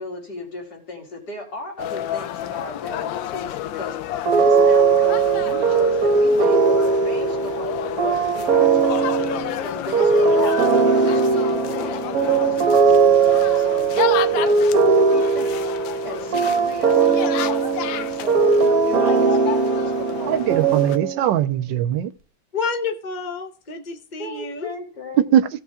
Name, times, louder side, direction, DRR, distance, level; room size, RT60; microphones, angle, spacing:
voice 1, 0.0-4.0 4.3-6.6 6.9-9.1 9.6-13.0 13.6-15.6 16.0-20.5 24.2-25.3, left 2 dB, 60° left, 3.5 m, -36 dB
sound 1, 1.8-21.0, left 11 dB, 80° left, 1.4 m, -31 dB
sound 2, 4.3-21.4, right 5 dB, 55° right, 1.3 m, -19 dB
voice 2, 20.3-22.1 25.2-25.5, right 10 dB, 75° right, 1.3 m, -20 dB
voice 3, 22.5-24.7, left 5 dB, 35° left, 0.7 m, -29 dB
15.5 x 7.1 x 3.6 m
omnidirectional pair, 2.1 m